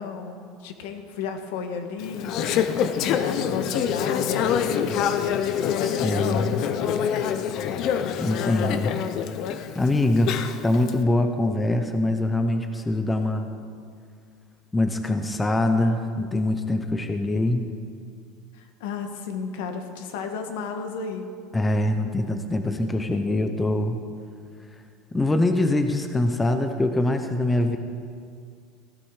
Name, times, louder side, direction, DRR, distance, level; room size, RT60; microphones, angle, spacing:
voice 1, 0.0-5.1 5.7-7.0 18.5-21.3, left 5 dB, 75° left, 5 dB, 1.5 m, -33 dB
Conversation / Chatter, 2.0-10.9, left 8 dB, 45° left, 0.7 m, -26 dB
voice 2, 6.0-6.6 8.2-8.9 9.7-13.5 14.7-17.6 21.5-24.0 25.1-27.8, left 2 dB, 10° left, 7 dB, 0.7 m, -23 dB
15.5 x 12.0 x 4.8 m, 2.3 s
supercardioid pair, 150°, 0 cm